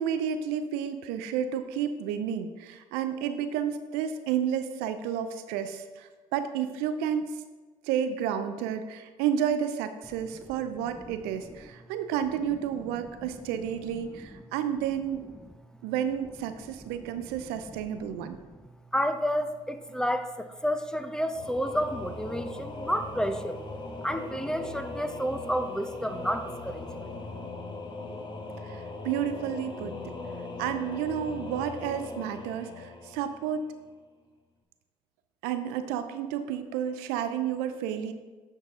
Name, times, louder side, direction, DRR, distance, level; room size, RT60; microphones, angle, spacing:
voice 1, 0.0-7.3 7.8-15.2 15.8-18.4 28.6-30.1 30.6-33.7 35.4-38.1, right 9 dB, 80° right, 9 dB, 0.5 m, -31 dB
voice 2, 10.3-11.2 12.9-13.3 14.1-14.4 15.4-15.5 17.5-17.8 18.2-18.6 18.9-23.6 24.0-27.1, equal, 5° left, 9 dB, 0.6 m, -31 dB
Singing / Musical instrument, 21.3-33.9, left 2 dB, 30° left, 1.0 m, -39 dB
9.6 x 4.1 x 3.6 m, 1.3 s
hypercardioid pair, 55°, 16 cm